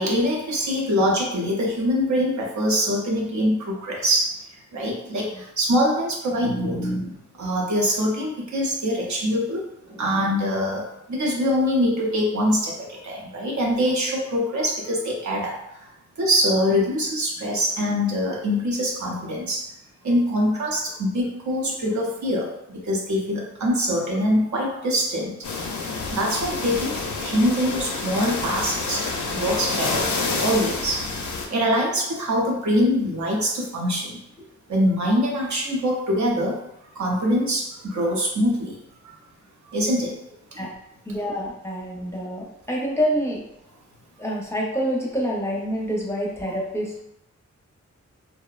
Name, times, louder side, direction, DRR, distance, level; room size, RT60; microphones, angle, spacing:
voice 1, 0.0-7.1 7.4-19.7 20.0-25.4 25.9-31.1 31.5-34.2 34.7-36.6 36.9-38.8 39.0-39.1 39.7-40.1 40.5-40.6, equal, 75° right, -2 dB, 0.7 m, -24 dB
sound 1, 25.4-31.5, left 3 dB, 80° left, 0.5 m, -28 dB
voice 2, 41.1-43.4 44.2-47.0, equal, 10° left, -4 dB, 0.5 m, -27 dB
2.6 x 2.0 x 2.3 m, 0.84 s
wide cardioid pair, 85°, 29 cm